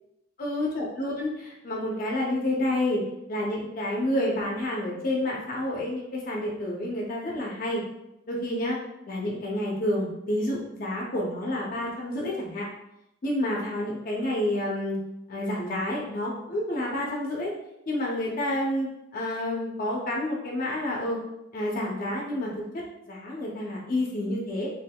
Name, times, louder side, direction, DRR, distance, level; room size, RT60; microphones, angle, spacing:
voice 1, 0.4-3.0 3.3-7.8 8.3-8.8 9.1-12.7 13.2-15.0 15.3-17.5 17.9-21.2 21.5-22.6 23.1-24.7, left 1 dB, 50° left, -2 dB, 0.6 m, -29 dB
3.5 x 3.0 x 2.2 m, 0.84 s
head